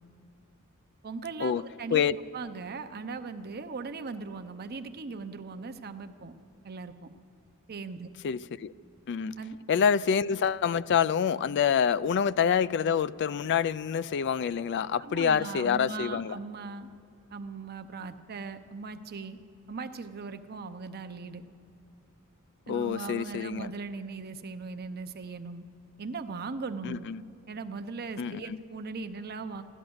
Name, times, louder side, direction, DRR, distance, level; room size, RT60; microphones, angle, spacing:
voice 1, 1.0-2.1 2.3-6.3 6.6-7.1 7.7-8.1 9.4-9.6 15.0-16.9 17.3-19.4 19.7-21.4 22.7-25.7 26.0-27.0 27.5-29.6, right 4 dB, 45° right, 0.7 m, -39 dB
voice 2, 8.2-8.7 9.1-9.4 9.7-16.3 22.7-23.7 26.8-27.2 28.2-28.4, left 7 dB, 55° left, 0.3 m, -27 dB
15.5 x 12.0 x 7.9 m
head